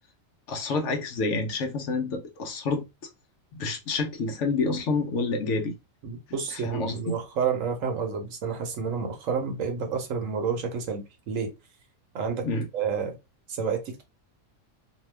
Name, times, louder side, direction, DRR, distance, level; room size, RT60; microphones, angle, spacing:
voice 1, 0.5-2.8 3.5-5.7 6.5-7.2 12.4-12.7, left 3 dB, 65° left, 0.9 m, -28 dB
voice 2, 6.0-11.5 12.1-12.5 12.7-13.2 13.5-14.0, right 6 dB, 70° right, 1.1 m, -29 dB
2.8 x 2.2 x 3.2 m
omnidirectional pair, 1.5 m